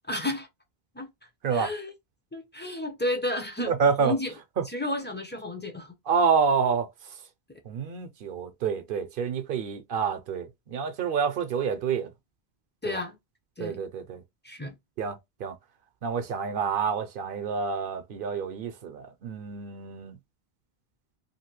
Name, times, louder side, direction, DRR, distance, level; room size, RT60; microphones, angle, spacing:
voice 1, 0.1-0.5 0.9-1.1 1.5-1.9 2.3-3.7 4.0-4.3 4.7-5.9 12.8-13.2 13.6-13.8 14.4-14.7, left 1 dB, 15° left, 0.5 m, -31 dB
voice 2, 3.7-4.2 4.6-4.7 6.1-6.9 7.7-12.1 12.8-13.0 13.6-14.2 15.0-15.6 16.0-20.2, right 6 dB, 65° right, 0.7 m, -28 dB
2.8 x 2.6 x 2.9 m
omnidirectional pair, 1.0 m